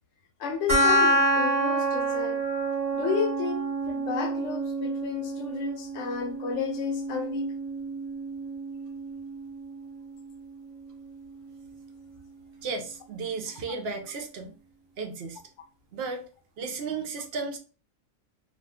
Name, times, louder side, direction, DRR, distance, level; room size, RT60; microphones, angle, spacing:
voice 1, 0.4-2.4 2.9-7.5, left 6 dB, 70° left, 0.9 m, -32 dB
sound 1, 0.7-11.7, right 1 dB, 35° right, 0.9 m, -29 dB
voice 2, 12.6-14.5 15.0-15.4 15.9-16.3 16.6-17.6, right 4 dB, 65° right, 0.7 m, -34 dB
2.4 x 2.2 x 3.3 m
omnidirectional pair, 1.3 m